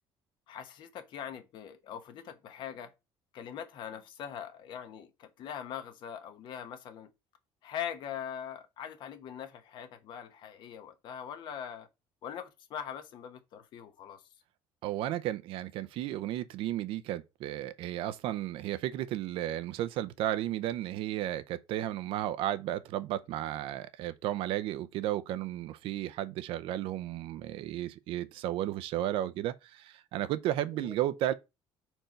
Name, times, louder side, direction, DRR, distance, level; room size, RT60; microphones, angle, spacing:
voice 1, 0.5-2.9 3.3-7.1 7.6-11.9 12.2-14.2 30.7-30.9, left 9 dB, 50° left, 1.1 m, -42 dB
voice 2, 14.8-31.3, right 13 dB, 65° right, 0.6 m, -33 dB
4.5 x 4.4 x 5.2 m
cardioid pair, 160°, 10 cm